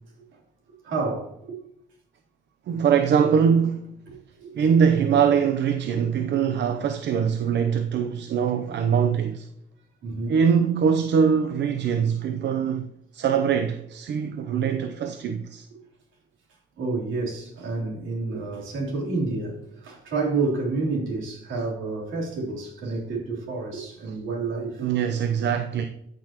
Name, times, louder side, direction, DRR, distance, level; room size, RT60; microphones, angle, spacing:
voice 1, 0.8-1.6 4.1-4.2 4.4-4.8 10.0-10.4 16.8-24.9, right 3 dB, 80° right, 3.5 m, -29 dB
voice 2, 2.7-3.9 4.5-9.5 10.3-12.9 13.1-15.7 24.8-25.8, right 7 dB, 65° right, 0.7 m, -22 dB
13.0 x 6.2 x 3.0 m
cardioid pair, 90°, 20 cm